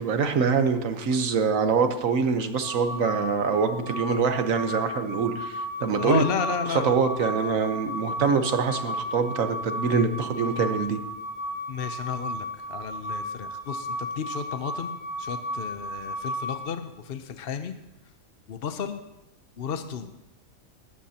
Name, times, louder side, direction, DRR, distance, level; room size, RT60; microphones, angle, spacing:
voice 1, 0.0-6.2 6.7-11.0, right 5 dB, 65° right, 8 dB, 1.4 m, -24 dB
sound 1, 2.6-16.6, equal, 40° right, 2.6 m, -34 dB
voice 2, 6.0-6.9 11.7-17.8 18.5-19.0 19.6-20.1, left 7 dB, 50° left, 8 dB, 0.7 m, -33 dB
19.0 x 13.5 x 2.9 m, 1.0 s
omnidirectional pair, 1.6 m